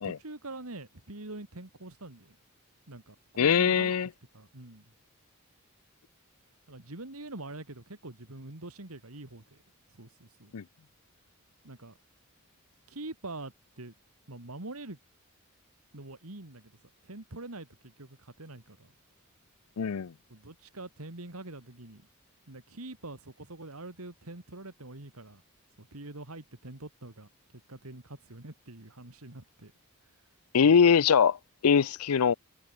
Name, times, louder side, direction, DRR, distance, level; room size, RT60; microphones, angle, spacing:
voice 1, 0.0-2.4 2.9-3.9 4.3-4.9 6.7-9.6 10.0-10.5 11.6-12.0 12.9-13.9 14.3-15.0 15.9-16.7 17.0-18.9 20.3-22.1 22.5-25.4 25.8-27.3 27.7-29.7 30.6-30.8, right 2 dB, 75° right, 2.6 m, -44 dB
voice 2, 3.4-4.1 10.5-10.6 19.8-20.1 30.5-31.4 31.6-32.3, left 6 dB, 90° left, 0.5 m, -22 dB
head